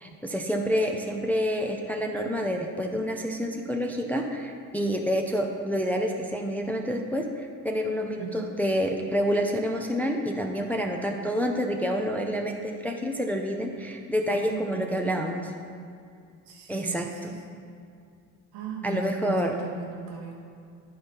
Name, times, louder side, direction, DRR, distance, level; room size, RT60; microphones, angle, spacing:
voice 1, 0.0-15.5 16.7-17.3 18.8-19.5, equal, 5° left, 2 dB, 0.6 m, -28 dB
voice 2, 14.3-15.5 16.5-17.4 18.5-20.3, right 5 dB, 75° right, -1 dB, 1.3 m, -37 dB
11.0 x 4.0 x 3.5 m, 2.3 s
hypercardioid pair, 60°, 45 cm